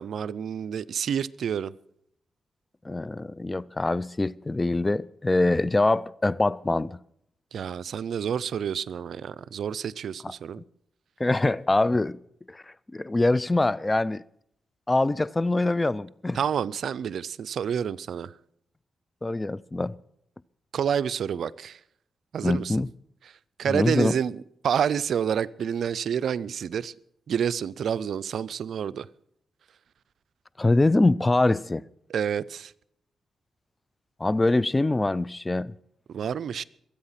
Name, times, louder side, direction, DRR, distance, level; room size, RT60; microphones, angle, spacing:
voice 1, 0.0-1.7 7.5-10.6 16.3-18.3 20.7-21.8 22.3-22.8 23.6-24.4 24.6-26.9 27.3-29.1 32.1-32.7 36.1-36.6, right 8 dB, 75° right, 0.5 m, -28 dB
voice 2, 2.8-7.0 10.6-10.7 11.2-12.2 12.5-12.6 12.9-14.2 14.9-16.4 19.2-19.9 22.4-22.9 23.7-24.1 30.6-31.8 34.2-35.7, left 2 dB, 20° left, 0.5 m, -24 dB
23.0 x 8.8 x 5.8 m
cardioid pair, 65°, 0 cm